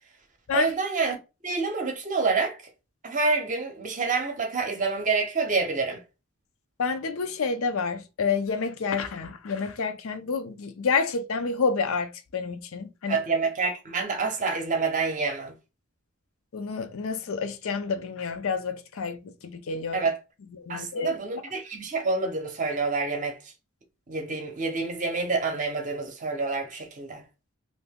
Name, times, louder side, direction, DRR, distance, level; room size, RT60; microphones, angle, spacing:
voice 1, 0.5-2.6 3.0-6.0 13.1-15.5 19.9-20.2 20.7-23.4 24.1-27.2, right 4 dB, 35° right, 0.7 m, -27 dB
voice 2, 6.8-13.2 16.5-20.1 20.6-21.1, left 5 dB, 65° left, 0.5 m, -29 dB
2.7 x 2.5 x 3.5 m
head